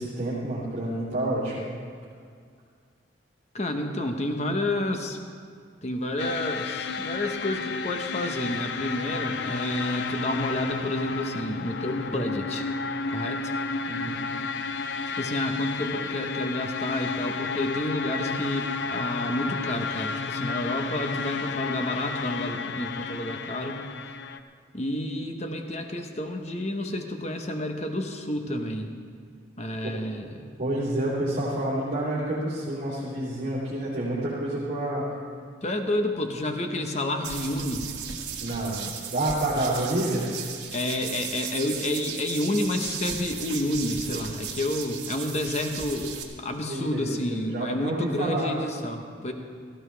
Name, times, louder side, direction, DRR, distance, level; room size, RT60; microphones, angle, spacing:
voice 1, 0.0-1.5 13.9-14.3 30.6-35.1 38.4-38.8 39.1-40.2 46.6-48.5, right 1 dB, 40° right, -11 dB, 3.2 m, -28 dB
voice 2, 3.5-5.2 5.8-12.6 13.1-13.5 15.2-23.8 24.7-28.9 29.6-30.4 35.6-37.9 40.7-49.3, left 1 dB, 35° left, 4 dB, 1.0 m, -30 dB
sound 1, 6.2-24.4, left 4 dB, 65° left, 0.6 m, -32 dB
sound 2, 37.2-46.2, right 7 dB, 60° right, 1.5 m, -36 dB
17.5 x 14.5 x 3.4 m, 2.2 s
head